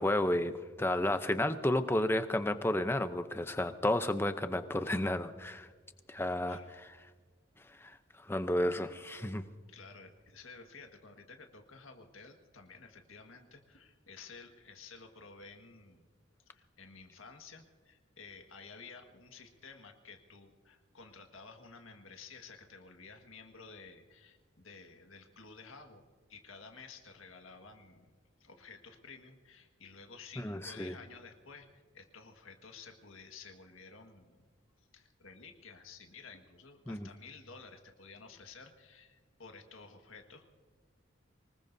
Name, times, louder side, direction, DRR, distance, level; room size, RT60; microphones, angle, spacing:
voice 1, 0.0-5.7 6.1-6.6 7.8-9.4 30.4-31.0 36.9-37.1, left 1 dB, 10° left, 10 dB, 0.6 m, -32 dB
voice 2, 9.7-16.0 16.5-28.1 28.4-34.5 34.9-40.5, left 4 dB, 90° left, 4 dB, 1.7 m, -53 dB
24.5 x 20.5 x 2.7 m, 1.5 s
head